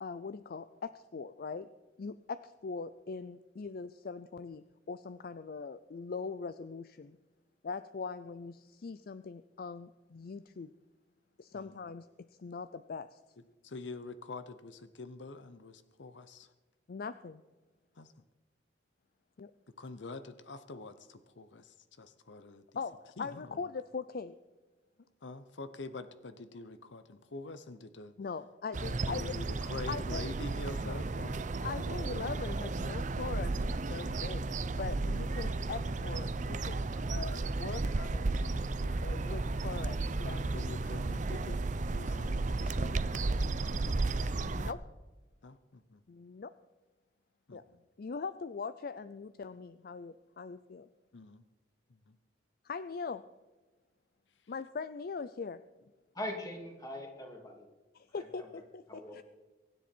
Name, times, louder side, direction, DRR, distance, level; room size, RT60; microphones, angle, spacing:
voice 1, 0.0-1.7 2.0-7.2 7.6-10.7 11.4-12.1 12.4-13.2 16.9-17.4 19.4-19.5 22.8-22.9 23.2-24.3 28.2-29.3 29.9-30.3 30.8-31.0 31.6-33.6 33.9-34.5 34.8-38.3 39.0-40.5 44.4-44.8 46.1-46.5 47.5-47.6 48.0-50.9 52.6-53.2 54.5-55.6 57.9-59.2, left 5 dB, 55° left, 13 dB, 0.4 m, -41 dB
voice 2, 13.6-16.5 18.0-18.1 19.8-22.7 23.2-23.7 25.2-28.1 29.1-31.4 33.6-34.4 36.9-37.2 38.4-38.7 40.4-41.6 41.9-44.4 45.4-46.0 47.5-47.8 51.1-51.4 51.9-52.2, left 3 dB, 85° left, 12 dB, 0.8 m, -46 dB
sound 1, 28.7-44.7, right 3 dB, 45° right, 0.6 m, -33 dB
voice 3, 56.1-57.7 58.2-58.5 58.9-59.2, left 1 dB, 20° left, 1 dB, 2.7 m, -41 dB
23.5 x 10.0 x 4.5 m, 1.2 s
head